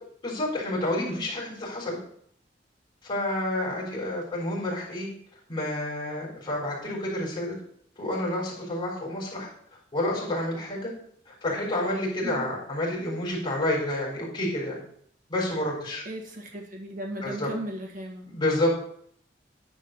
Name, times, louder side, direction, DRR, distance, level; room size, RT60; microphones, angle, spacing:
voice 1, 0.2-2.0 3.0-5.1 5.5-7.5 8.0-9.5 9.9-10.9 11.3-14.8 15.3-16.0 17.2-17.5 18.3-18.7, left 1 dB, 30° left, -4 dB, 3.8 m, -29 dB
voice 2, 16.1-18.3, right 1 dB, 45° right, 1 dB, 1.8 m, -36 dB
10.0 x 4.1 x 6.4 m, 0.65 s
head